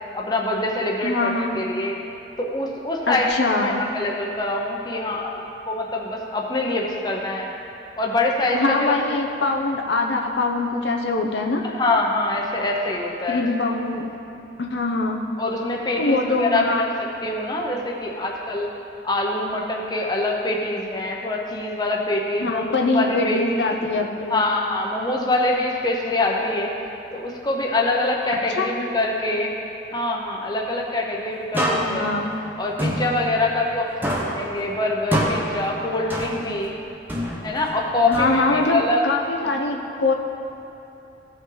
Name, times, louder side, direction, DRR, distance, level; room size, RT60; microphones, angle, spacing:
voice 1, 0.1-1.9 2.4-7.5 8.0-9.0 11.6-13.4 15.4-18.7 19.0-23.7 24.3-26.7 27.1-29.5 29.9-32.1 32.6-36.7 37.4-39.0, left 2 dB, 20° left, -1 dB, 0.8 m, -24 dB
voice 2, 1.0-1.6 3.1-3.9 8.5-11.7 13.3-14.1 14.6-15.2 15.9-16.9 22.4-24.4 28.6-28.7 31.7-32.3 38.1-40.1, left 3 dB, 75° left, 2 dB, 0.7 m, -23 dB
sound 1, 31.5-33.8 34.0-36.7 37.1-38.8, equal, 10° right, 0.8 m, -27 dB
16.0 x 5.5 x 3.9 m, 2.9 s
head